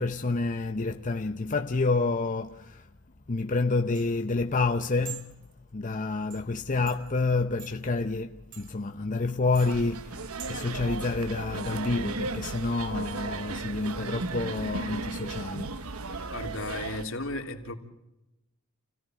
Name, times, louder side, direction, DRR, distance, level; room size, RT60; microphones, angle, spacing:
voice 1, 0.0-2.9 3.3-5.3 5.7-16.2, left 3 dB, 35° left, 0.8 m, -29 dB
sound 1, 3.4-10.8, right 9 dB, 60° right, 2.6 m, -48 dB
sound 2, 9.5-17.0, right 3 dB, 85° right, 1.1 m, -36 dB
voice 2, 16.3-17.7, left 2 dB, 65° left, 3.3 m, -34 dB
29.5 x 17.5 x 7.8 m
head